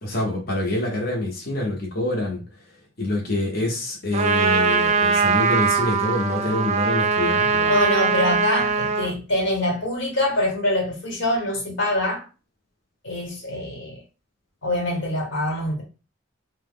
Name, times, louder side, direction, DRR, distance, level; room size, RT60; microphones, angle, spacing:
voice 1, 0.0-2.4 3.0-7.8, left 2 dB, 55° left, 0.9 m, -26 dB
Trumpet, 4.1-9.1, right 5 dB, 35° right, 0.4 m, -21 dB
voice 2, 7.7-12.2 13.0-14.0 14.6-15.8, left 1 dB, 80° left, 1.3 m, -24 dB
3.0 x 2.1 x 3.5 m
head